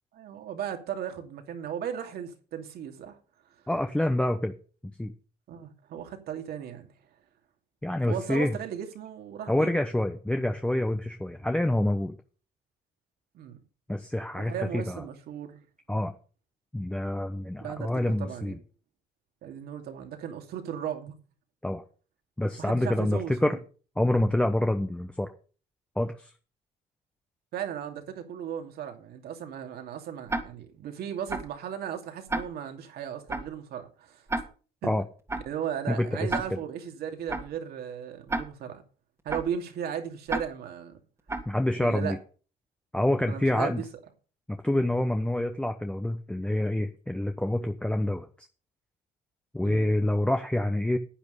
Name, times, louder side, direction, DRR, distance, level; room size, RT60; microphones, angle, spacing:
voice 1, 0.1-3.2 5.5-6.9 8.1-9.7 13.3-13.6 14.3-15.6 17.6-17.9 18.2-18.5 19.4-21.1 22.6-23.6 27.5-34.2 34.8-34.9 35.5-38.8 39.2-41.0 41.8-42.2 43.3-43.8 49.6-49.9, right 9 dB, 70° right, 2.6 m, -36 dB
voice 2, 3.7-4.5 5.0-5.1 7.8-8.5 9.5-12.2 13.9-15.0 15.9-16.1 16.7-18.6 21.6-21.8 22.4-23.6 24.0-25.3 26.0-26.3 34.8-35.0 35.9-36.6 41.5-42.2 42.9-43.8 44.5-48.5 49.5-51.0, left 1 dB, 5° left, 1.0 m, -27 dB
Tick-tock, 30.3-30.4 31.3-31.4 32.3-32.4 33.3-33.4 34.3-34.4 35.3-35.4 36.3-36.4 37.3-37.4 38.3-38.4 39.3-39.4 40.3-40.4 41.3-41.4, right 2 dB, 15° right, 2.0 m, -29 dB
10.0 x 9.2 x 5.5 m
cardioid pair, 110°, 17 cm